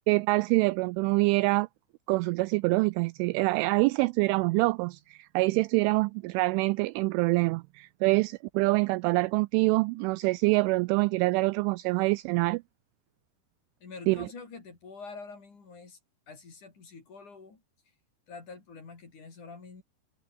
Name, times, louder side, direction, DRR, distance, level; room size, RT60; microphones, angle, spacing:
voice 1, 0.1-1.7 2.1-12.6 14.1-14.3, right 24 dB, 85° right, 2.8 m, -25 dB
voice 2, 13.8-16.0 16.3-17.6 18.3-19.8, left 4 dB, 40° left, 5.8 m, -46 dB
omnidirectional pair, 6.0 m